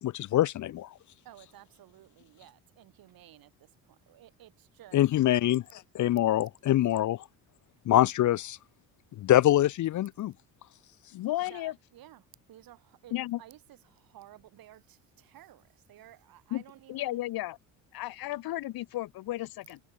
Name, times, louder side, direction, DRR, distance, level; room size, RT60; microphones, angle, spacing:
voice 1, 0.0-0.9 4.9-7.2 7.9-8.6 9.2-10.3, left 13 dB, 50° left, 0.7 m, -24 dB
voice 2, 1.2-3.5 3.9-5.0 11.5-17.2, right 13 dB, 65° right, 4.9 m, -54 dB
voice 3, 11.1-11.8 13.1-13.4 16.5-16.6 16.9-17.6 17.9-19.8, left 16 dB, 65° left, 2.1 m, -33 dB
supercardioid pair, 70°, 39 cm